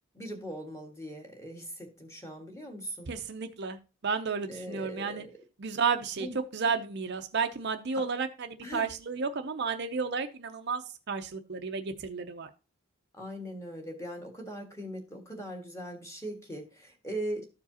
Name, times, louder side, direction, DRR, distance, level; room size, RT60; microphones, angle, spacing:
voice 1, 0.1-3.2 4.5-5.3 6.2-6.4 7.9-8.0 8.6-8.9 13.1-17.4, right 1 dB, 15° left, 2 dB, 1.6 m, -40 dB
voice 2, 3.1-5.3 5.6-6.3 6.5-12.5, right 5 dB, 50° right, 7 dB, 0.6 m, -32 dB
14.0 x 4.8 x 2.8 m, 0.32 s
head